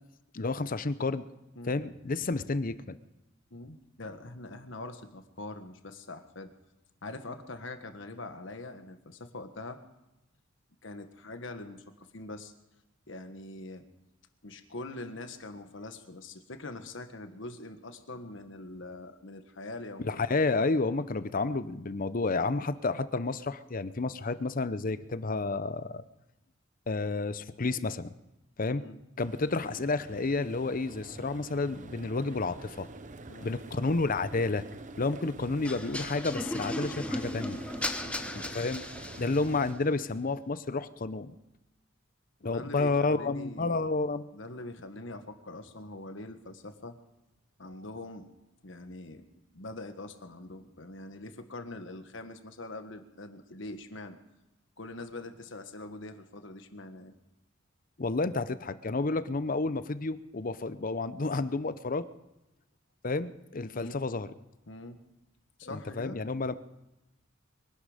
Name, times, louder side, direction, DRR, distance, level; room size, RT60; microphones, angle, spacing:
voice 1, 0.3-1.2 1.7-3.0 20.0-26.0 26.9-28.1 28.6-28.8 29.2-32.9 33.4-34.6 35.0-37.6 38.5-38.8 39.2-41.3 42.4-44.3 58.0-62.1 63.0-64.3 65.7-66.5, left 3 dB, 45° left, 14 dB, 0.7 m, -30 dB
voice 2, 3.5-6.5 7.0-9.8 10.8-12.5 13.1-13.9 14.4-20.2 28.7-29.0 33.3-33.6 38.0-38.4 42.4-43.8 44.3-47.0 47.6-48.3 48.6-49.3 49.5-54.2 54.8-57.2 63.7-64.0 64.7-65.0 65.6-66.2, left 2 dB, 65° left, 8 dB, 1.5 m, -43 dB
sound 1, 29.2-39.7, right 2 dB, 40° right, 0.8 m, -46 dB
sound 2, 35.6-39.6, left 1 dB, 5° left, 0.9 m, -36 dB
23.5 x 11.5 x 5.0 m, 0.96 s
head